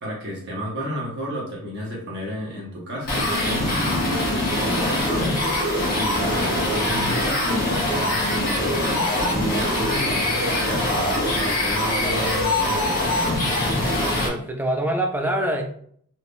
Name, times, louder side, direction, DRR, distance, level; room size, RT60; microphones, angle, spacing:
voice 1, 0.0-13.5, equal, 50° right, -4 dB, 1.0 m, -32 dB
sound 1, 3.0-14.3, left 1 dB, 40° left, 1.3 m, -23 dB
voice 2, 14.0-15.6, right 1 dB, 10° right, 4 dB, 0.3 m, -25 dB
3.5 x 2.7 x 2.5 m, 0.62 s
head